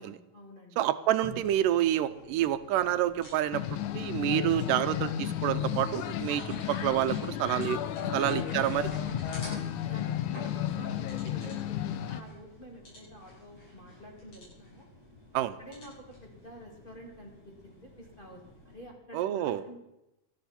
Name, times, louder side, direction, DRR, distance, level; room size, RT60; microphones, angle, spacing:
voice 1, 0.0-0.8 8.1-8.3 9.4-14.9 15.6-17.3 17.6-19.8, equal, 20° left, -2 dB, 2.1 m, -49 dB
voice 2, 0.8-3.6 3.9-8.9 15.3-15.5 19.1-19.6, right 12 dB, 90° right, 12 dB, 2.3 m, -28 dB
sound 1, 1.2-18.8, equal, 55° left, 8.5 m, -49 dB
sound 2, 3.5-12.2, left 11 dB, 80° left, 2.3 m, -33 dB
19.5 x 13.5 x 4.3 m, 0.92 s
omnidirectional pair, 3.7 m